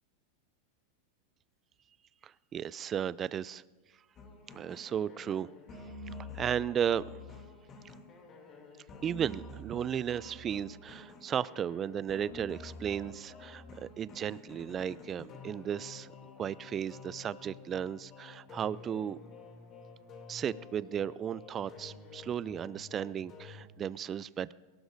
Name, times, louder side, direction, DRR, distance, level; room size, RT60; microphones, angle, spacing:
voice 1, 2.2-3.6 4.5-5.5 6.3-7.0 9.0-16.1 16.4-19.2 20.3-24.5, right 9 dB, 30° right, 19 dB, 0.4 m, -35 dB
sound 1, 4.2-23.7, left 3 dB, 35° left, 2.8 m, -49 dB
22.5 x 18.5 x 2.7 m, 1.3 s
hypercardioid pair, 105°, 0 cm